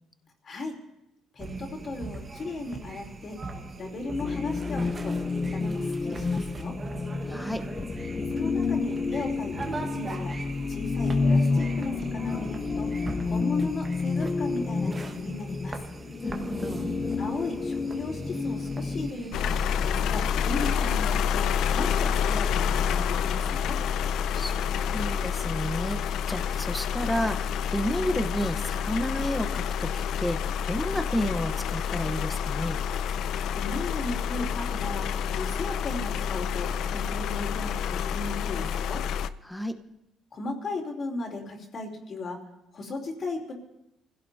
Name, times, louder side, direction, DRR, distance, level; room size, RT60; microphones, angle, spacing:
voice 1, 0.4-0.8 1.3-3.4 3.8-6.7 8.1-10.4 10.7-12.9 13.2-15.8 17.2-19.6 19.8-21.5 21.7-23.8 33.5-35.1 35.4-39.0 40.3-42.4 42.7-43.5, left 2 dB, 40° left, 1 dB, 3.5 m, -36 dB
sound 1, 1.4-20.7, right 3 dB, 30° right, 1.5 m, -40 dB
sound 2, 4.2-19.1, left 4 dB, 25° left, 0.5 m, -29 dB
voice 2, 7.3-7.7 16.2-16.8 24.3-24.5 24.9-26.0 26.3-32.8 39.4-39.8, equal, 5° left, 6 dB, 1.1 m, -31 dB
sound 3, 19.3-39.3, left 7 dB, 70° left, 0.5 m, -28 dB
29.0 x 16.0 x 2.8 m, 0.86 s
cardioid pair, 125°, 0 cm